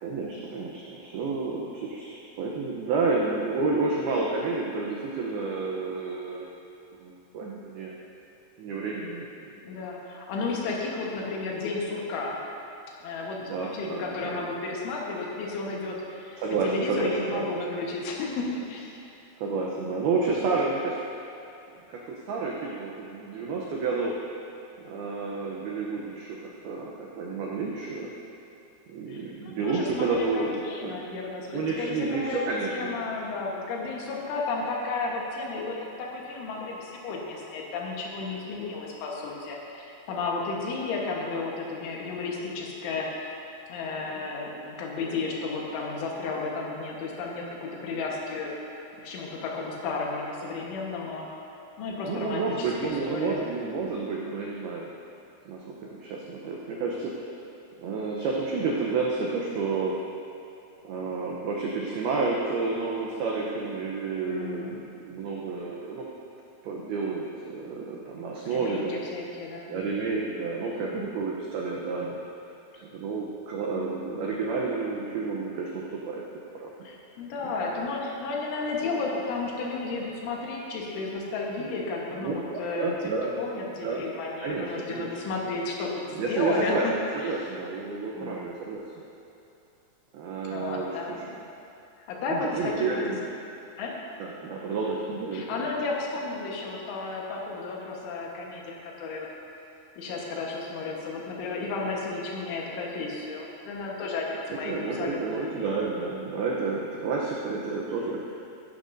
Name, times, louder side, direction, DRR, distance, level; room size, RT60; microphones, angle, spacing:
voice 1, 0.0-6.5 7.0-7.9 8.6-9.3 13.4-14.4 16.4-17.5 19.4-21.0 21.9-24.2 24.8-26.4 26.6-28.1 28.9-31.0 31.5-32.9 44.1-44.2 52.0-54.9 55.5-57.3 57.8-60.0 60.8-66.1 66.6-68.9 69.7-72.2 72.8-76.2 76.6-76.7 81.6-81.7 82.2-82.4 82.8-83.4 83.8-84.0 84.4-85.1 86.1-86.8 87.1-88.8 90.1-91.2 92.3-93.1 94.2-95.7 104.3-104.4 104.6-108.2, right 4 dB, 85° right, -3 dB, 2.2 m, -30 dB
voice 2, 9.6-12.4 13.0-18.9 19.8-19.9 29.1-32.4 32.7-43.3 43.7-48.6 49.0-51.3 51.8-53.5 64.2-64.8 65.7-65.8 68.5-69.8 70.8-71.3 73.7-74.1 76.8-82.9 83.4-87.5 88.2-88.5 90.4-91.3 92.1-93.2 93.8-93.9 95.3-99.3 100.0-105.7, left 3 dB, 75° left, -2 dB, 3.7 m, -33 dB
15.5 x 11.5 x 2.7 m, 2.7 s
omnidirectional pair, 5.6 m